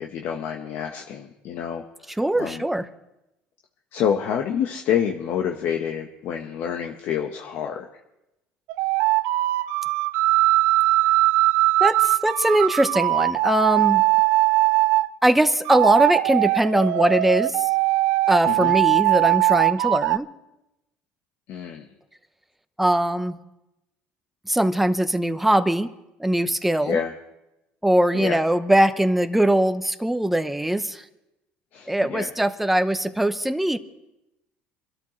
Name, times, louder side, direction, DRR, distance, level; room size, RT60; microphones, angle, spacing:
voice 1, 0.0-2.6 3.9-7.9 18.4-18.7 21.5-21.9 26.8-27.1 28.1-28.4 31.7-32.3, left 8 dB, 60° left, 2 dB, 1.3 m, -28 dB
voice 2, 2.2-2.9 11.8-14.0 15.2-17.7 18.3-20.3 22.8-23.4 24.5-25.9 26.2-27.0 27.8-31.0 31.9-33.8, right 1 dB, 5° right, 10 dB, 0.9 m, -21 dB
sound 1, 8.7-15.1 15.6-20.2, right 18 dB, 75° right, 0.4 m, -20 dB
25.5 x 13.0 x 3.2 m, 0.91 s
supercardioid pair, 105°, 4 cm